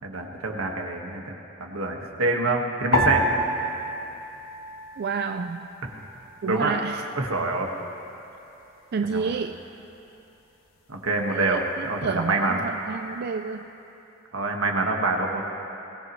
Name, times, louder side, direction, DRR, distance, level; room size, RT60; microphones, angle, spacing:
voice 1, 0.0-3.3 6.5-6.8 7.2-7.7 9.1-9.3 10.9-11.6 11.9-12.7 14.3-15.4, right 2 dB, 85° right, 1 dB, 1.7 m, -26 dB
sound 1, 2.9-5.4 5.7-6.6 7.2-7.6, equal, 80° left, 1.7 m, -28 dB
voice 2, 5.0-5.7 6.4-7.1 8.9-9.6 11.3-13.7, right 5 dB, 50° right, 6 dB, 0.4 m, -30 dB
22.5 x 18.0 x 3.2 m, 2.9 s
head